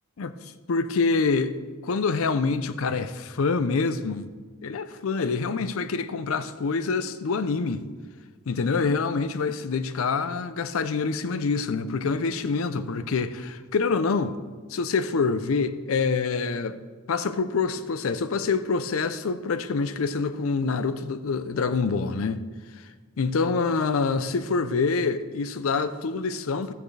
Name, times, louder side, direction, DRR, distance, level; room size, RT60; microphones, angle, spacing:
voice 1, 0.7-1.5 1.8-4.3 4.6-7.8 8.5-14.4 14.7-16.8 17.1-22.4 23.2-26.7, left 4 dB, 70° left, 0.5 m, -26 dB
13.5 x 8.7 x 3.3 m
head